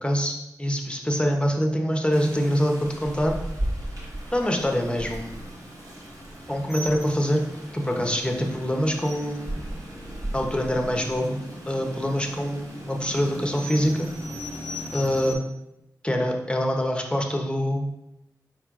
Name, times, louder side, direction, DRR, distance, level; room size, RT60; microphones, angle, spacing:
voice 1, 0.0-3.3 4.3-5.4 6.5-7.4 7.7-9.6 10.3-14.1 14.9-15.4 16.0-17.9, equal, 15° left, 2 dB, 0.8 m, -25 dB
Rain, 2.1-15.3, equal, 60° right, 1.2 m, -36 dB
4.4 x 4.4 x 2.5 m, 0.84 s
cardioid pair, 45°, 7 cm